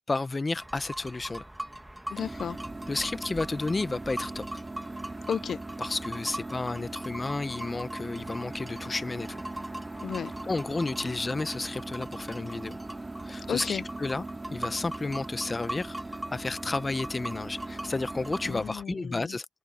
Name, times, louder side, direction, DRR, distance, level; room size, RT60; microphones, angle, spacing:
voice 1, 0.1-1.4 2.9-4.6 5.8-9.4 10.4-12.8 13.2-14.2 14.5-16.0 16.3-19.5, left 3 dB, 30° left, 1.0 m, -32 dB
sound 1, 0.5-18.8, right 1 dB, 10° right, 2.5 m, -41 dB
voice 2, 2.1-2.6 5.3-5.6 10.0-10.3 13.5-13.8 18.4-19.4, left 7 dB, 70° left, 0.6 m, -33 dB
sound 2, 2.1-18.6, right 2 dB, 25° right, 5.1 m, -40 dB
supercardioid pair, 55°, 0 cm